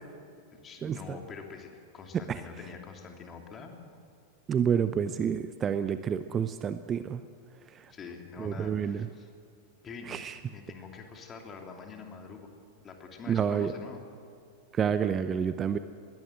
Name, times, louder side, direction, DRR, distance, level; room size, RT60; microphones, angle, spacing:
voice 1, 0.5-3.7 7.9-9.3 9.8-10.1 10.5-12.5 12.8-14.0, left 5 dB, 25° left, 2 dB, 3.1 m, -45 dB
voice 2, 4.5-7.2 7.7-7.9 8.4-9.1 10.1-10.4 13.3-13.7 14.7-15.8, right 7 dB, 25° right, 12 dB, 0.7 m, -29 dB
21.5 x 17.0 x 7.9 m, 2.4 s
figure-of-eight pair, 90°, 0 cm